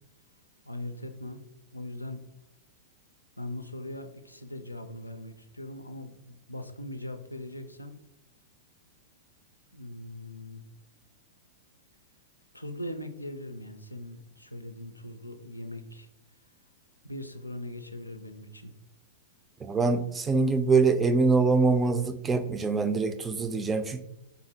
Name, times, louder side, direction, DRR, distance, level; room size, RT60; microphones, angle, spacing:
voice 1, 0.7-1.4 1.7-2.2 3.4-8.0 9.7-10.6 12.5-16.1 17.0-18.7, left 1 dB, 90° left, 8 dB, 0.4 m, -40 dB
voice 2, 19.6-24.0, right 4 dB, 15° right, 9 dB, 0.4 m, -24 dB
4.0 x 3.7 x 2.8 m, 0.90 s
figure-of-eight pair, 100°, 0 cm